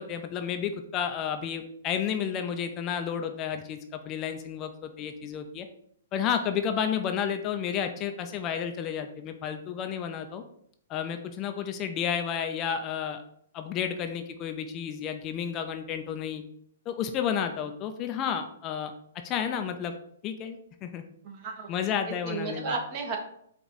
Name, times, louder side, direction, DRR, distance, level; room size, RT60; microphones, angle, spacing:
voice 1, 0.0-5.7 6.1-10.4 10.9-13.2 13.5-16.4 16.9-18.9 19.2-19.9 20.2-21.0 21.7-22.7, left 8 dB, 30° left, 6 dB, 0.4 m, -31 dB
voice 2, 21.2-21.7 22.1-23.2, right 4 dB, 40° right, 3 dB, 1.0 m, -33 dB
4.7 x 2.5 x 4.1 m, 0.67 s
hypercardioid pair, 120°, 0 cm